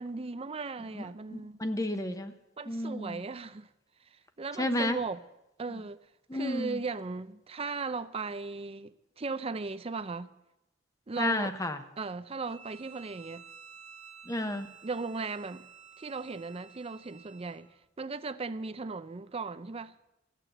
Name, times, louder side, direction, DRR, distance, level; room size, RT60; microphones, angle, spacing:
voice 1, 0.0-1.6 2.6-3.7 4.4-5.2 5.6-6.0 6.3-10.3 11.1-11.5 12.0-13.4 14.8-15.7 16.0-17.7 18.0-20.1, right 4 dB, 30° right, 0.5 m, -37 dB
voice 2, 0.9-2.3 2.7-3.2 4.6-5.0 6.3-6.8 11.2-11.8 14.3-14.7, left 1 dB, 15° left, 0.9 m, -32 dB
Bowed string instrument, 12.4-17.7, right 7 dB, 65° right, 2.1 m, -52 dB
14.0 x 8.2 x 9.0 m
head